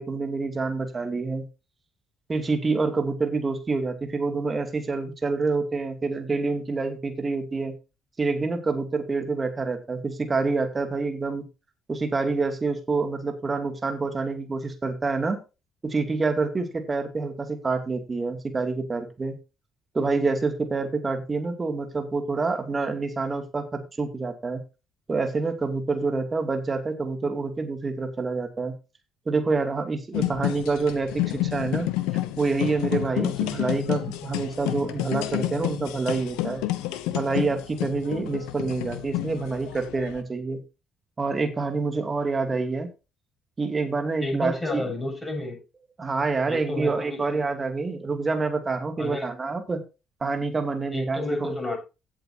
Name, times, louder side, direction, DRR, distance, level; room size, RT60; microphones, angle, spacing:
voice 1, 0.0-1.5 2.3-7.7 8.2-11.5 11.9-15.4 15.8-19.3 19.9-24.6 25.1-28.7 29.3-31.9 32.4-36.6 37.1-40.6 41.2-42.9 43.6-44.8 46.0-49.8 50.2-51.6, right 3 dB, 25° right, 6 dB, 2.6 m, -27 dB
sound 1, 30.1-40.2, left 15 dB, 65° left, 0.9 m, -30 dB
voice 2, 44.2-45.6 46.5-47.2 49.0-49.3 50.9-51.8, left 2 dB, 15° left, 1 dB, 7.6 m, -30 dB
16.5 x 7.8 x 2.8 m, 0.29 s
figure-of-eight pair, 50°, 0 cm